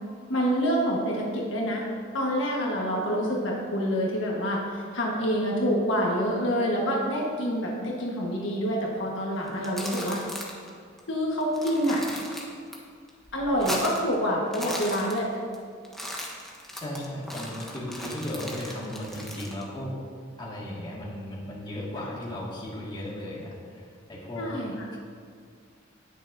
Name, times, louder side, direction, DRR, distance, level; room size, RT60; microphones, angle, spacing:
voice 1, 0.3-1.8 2.1-10.2 11.1-12.0 13.3-15.3 24.4-24.7, equal, 70° left, -3 dB, 1.6 m, -27 dB
sound 1, 9.5-10.7 11.0-11.1 11.4-12.8 13.1-14.1 14.4-15.6 15.8-19.6, left 1 dB, ahead, 1.3 m, -37 dB
voice 2, 16.8-20.0 20.4-24.5 24.9-25.0, left 1 dB, 25° left, -6 dB, 2.3 m, -36 dB
19.5 x 6.7 x 2.8 m, 2.1 s
head